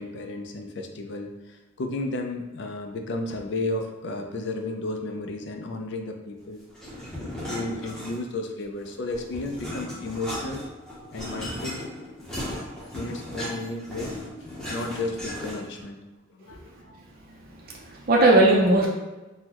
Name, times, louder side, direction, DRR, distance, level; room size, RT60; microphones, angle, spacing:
voice 1, 0.0-6.6 7.5-10.6 11.1-11.9 12.9-14.2 14.7-16.0 16.3-16.6, left 2 dB, 55° left, 3 dB, 0.4 m, -33 dB
sound 1, 6.7-8.4 8.8-15.8, left 1 dB, 5° left, 0.7 m, -36 dB
voice 2, 17.3-18.9, right 2 dB, 45° right, -2 dB, 0.4 m, -20 dB
3.7 x 2.1 x 2.9 m, 1.1 s
head